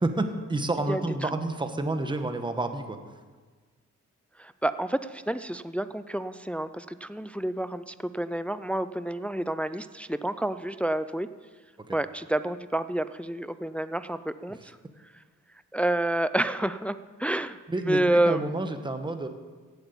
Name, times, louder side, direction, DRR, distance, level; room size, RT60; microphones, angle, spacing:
voice 1, 0.0-3.0 11.8-12.0 17.7-18.0 18.2-19.3, right 2 dB, 15° right, 7 dB, 1.1 m, -29 dB
voice 2, 0.9-1.3 4.4-11.3 11.9-14.8 15.7-18.4, right 1 dB, 5° left, 12 dB, 0.3 m, -29 dB
16.0 x 8.0 x 8.4 m, 1.4 s
wide cardioid pair, 140°, 29 cm